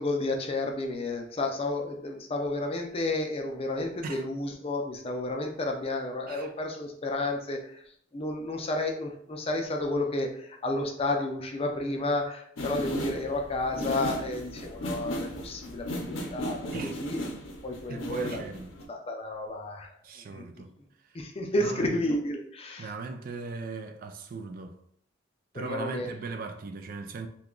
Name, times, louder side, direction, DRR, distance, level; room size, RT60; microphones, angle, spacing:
voice 1, 0.0-7.8 8.1-17.2 17.6-18.4 18.9-19.9 20.3-20.4 21.1-22.9 25.5-26.1, left 2 dB, 30° left, 0.4 m, -31 dB
sound 1, 12.6-18.8, equal, 80° left, 0.6 m, -35 dB
voice 2, 17.9-18.7 20.0-20.7 21.0-21.2 21.6-22.0 22.8-24.8 25.5-27.3, right 4 dB, 50° right, 0.3 m, -38 dB
2.8 x 2.3 x 3.7 m
head